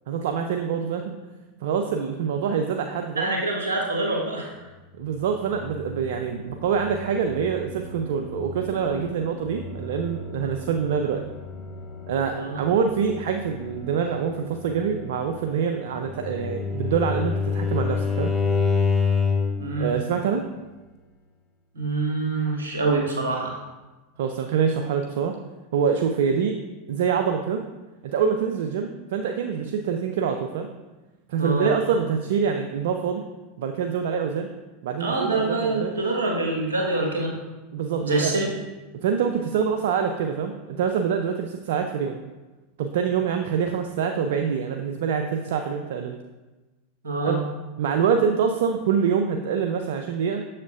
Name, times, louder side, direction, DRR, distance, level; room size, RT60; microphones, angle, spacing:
voice 1, 0.1-1.2 1.6-3.3 5.0-11.2 12.1-18.3 19.8-20.4 24.2-25.4 25.7-26.5 26.9-27.6 28.0-30.7 31.3-33.2 33.6-34.5 34.8-35.9 37.7-38.4 39.0-42.2 42.8-46.2 47.2-47.4 47.8-50.4, right 6 dB, 70° right, 5 dB, 0.4 m, -25 dB
voice 2, 3.1-4.6 12.4-12.6 19.6-19.9 21.7-23.6 31.4-31.7 35.0-37.4 37.9-38.5 47.0-47.4, right 2 dB, 85° right, -1 dB, 1.3 m, -25 dB
sound 1, 4.5-21.3, left 1 dB, 55° left, 0.9 m, -42 dB
Bowed string instrument, 16.0-19.7, left 5 dB, 15° left, 0.9 m, -24 dB
7.0 x 6.4 x 2.4 m, 1.2 s
hypercardioid pair, 95°, 0 cm